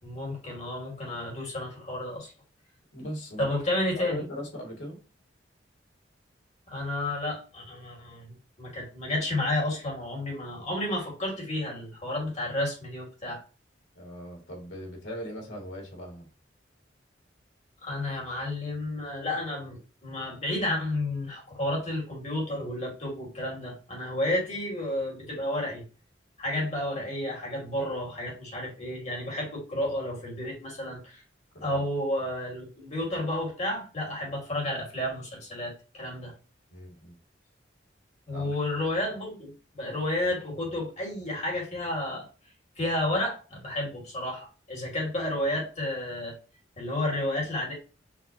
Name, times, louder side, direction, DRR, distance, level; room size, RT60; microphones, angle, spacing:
voice 1, 0.0-2.3 3.4-4.2 6.7-13.4 17.8-25.8 26.4-31.2 31.6-36.3 38.3-42.3 42.8-46.3 46.8-47.7, left 1 dB, 40° left, -2 dB, 2.3 m, -31 dB
voice 2, 2.9-3.6 4.0-5.0 14.0-16.3 31.5-31.9 36.7-37.2 38.3-38.5, equal, 75° left, 0 dB, 2.1 m, -39 dB
5.9 x 2.9 x 2.8 m, 0.33 s
head